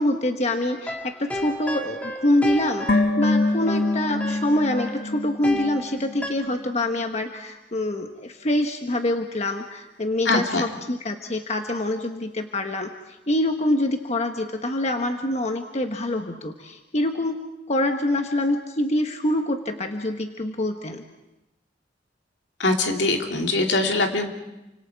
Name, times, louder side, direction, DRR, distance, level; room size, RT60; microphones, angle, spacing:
voice 1, 0.0-17.4 17.7-21.0, left 1 dB, 40° left, 5 dB, 1.2 m, -25 dB
sound 1, 0.7-6.3, left 1 dB, 10° left, 2.3 m, -33 dB
sound 2, 2.9-6.2 6.4-6.5, left 2 dB, 55° left, 1.5 m, -25 dB
voice 2, 10.2-10.6 22.6-24.3, left 2 dB, 75° left, 3 dB, 2.7 m, -22 dB
29.0 x 25.5 x 4.7 m, 0.95 s
head